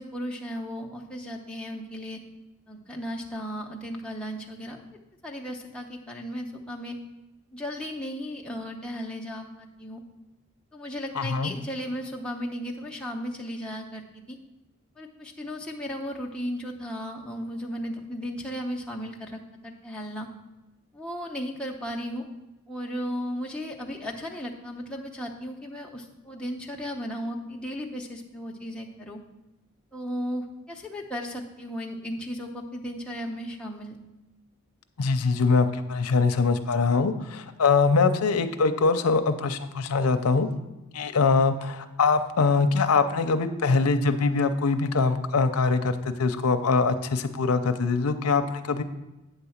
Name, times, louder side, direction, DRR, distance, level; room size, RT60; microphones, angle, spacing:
voice 1, 0.0-2.2 2.7-4.8 5.2-7.0 7.5-10.0 10.7-14.4 15.0-20.3 20.9-22.3 22.7-29.2 29.9-34.0, equal, 5° left, -1 dB, 0.7 m, -35 dB
voice 2, 11.2-11.5 35.0-40.5 40.9-48.8, left 4 dB, 85° left, 8 dB, 0.6 m, -23 dB
9.0 x 3.9 x 7.1 m, 1.0 s
head